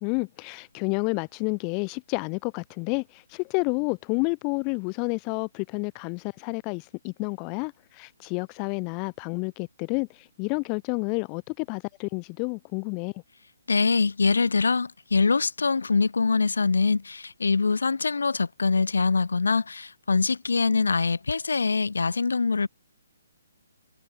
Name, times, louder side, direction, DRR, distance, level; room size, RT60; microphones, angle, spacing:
voice 1, 0.0-13.1, left 37 dB, 25° left, 0.8 m, -30 dB
voice 2, 13.7-22.7, left 4 dB, 75° left, 1.4 m, -24 dB
figure-of-eight pair, 140°, 0 cm